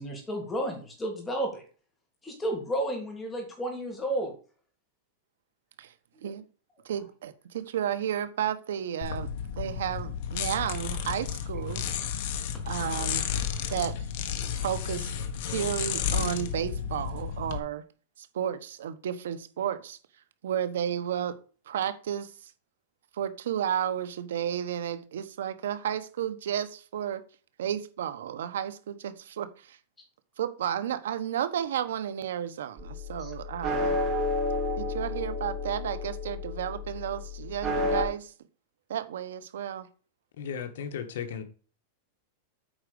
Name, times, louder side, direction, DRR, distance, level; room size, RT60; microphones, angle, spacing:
voice 1, 0.0-1.6 2.2-4.3 6.1-6.3 33.2-33.3, right 1 dB, 10° left, 3.2 m, -32 dB
voice 2, 6.8-9.3 9.6-11.8 12.6-13.3 13.7-14.0 14.6-15.2 15.5-17.8 18.2-20.0 20.4-21.4 21.7-22.5 23.1-27.2 27.6-29.8 30.4-33.9 34.8-38.3 38.9-39.9, right 9 dB, 90° right, 1.2 m, -32 dB
sound 1, 9.0-17.6, left 8 dB, 50° left, 1.4 m, -32 dB
sound 2, 32.8-38.0, left 2 dB, 20° right, 2.7 m, -31 dB
voice 3, 40.4-41.4, left 7 dB, 75° left, 1.7 m, -35 dB
8.7 x 5.1 x 6.9 m
supercardioid pair, 160°, 0 cm